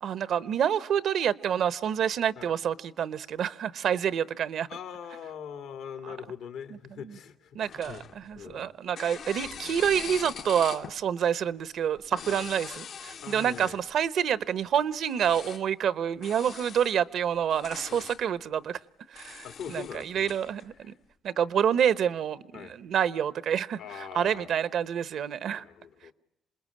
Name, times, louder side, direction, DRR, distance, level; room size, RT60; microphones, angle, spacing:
voice 1, 0.0-4.7 7.5-18.8 19.1-20.9 21.2-23.8 24.1-25.6, right 8 dB, 70° right, 16 dB, 0.9 m, -28 dB
voice 2, 4.7-8.0 8.4-8.7 12.3-12.5 13.2-13.8 17.9-18.1 19.4-20.3 20.7-21.0 22.5-22.8 23.7-24.5 25.5-26.1, left 8 dB, 85° left, 7 dB, 2.4 m, -42 dB
sound 1, 7.6-8.5 9.0-11.0 12.0-14.0 15.1-15.6 16.2-16.9 17.4-18.2 19.1-20.6, left 7 dB, 65° left, 0.9 m, -42 dB
27.5 x 20.5 x 8.6 m, 0.87 s
cardioid pair, 90°, 0 cm